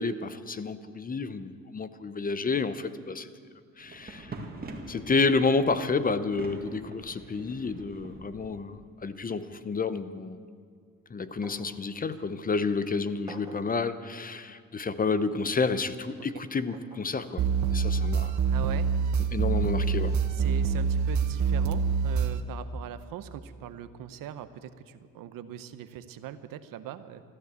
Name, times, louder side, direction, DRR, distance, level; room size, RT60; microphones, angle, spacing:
voice 1, 0.0-3.3 3.8-4.3 4.9-10.4 11.1-17.4 17.7-18.3 19.3-20.2, left 4 dB, 25° left, 13 dB, 0.7 m, -30 dB
sound 1, 3.8-8.7, right 2 dB, 30° right, 2.0 m, -44 dB
sound 2, 11.4-11.8 12.1-12.2 13.3-13.7 14.8-15.0 16.7-17.1 18.2-18.4 19.7-19.8, right 2 dB, 10° right, 2.2 m, -49 dB
sound 3, 17.4-22.4, right 6 dB, 60° right, 1.0 m, -26 dB
voice 2, 18.5-18.9 20.3-27.2, right 10 dB, 85° right, 11 dB, 0.9 m, -41 dB
14.5 x 12.5 x 8.1 m, 2.1 s
cardioid pair, 105°, 32 cm